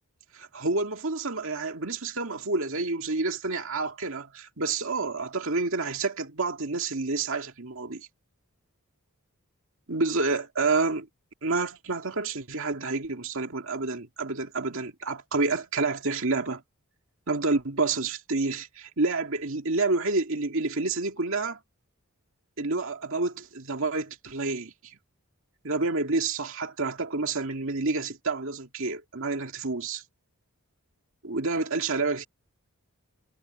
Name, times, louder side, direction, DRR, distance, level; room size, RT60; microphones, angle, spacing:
voice 1, 0.3-8.1 9.9-11.1 11.4-16.6 17.3-21.6 22.6-25.0 25.6-30.0 31.2-32.3, right 3 dB, 60° right, 2.3 m, -29 dB
head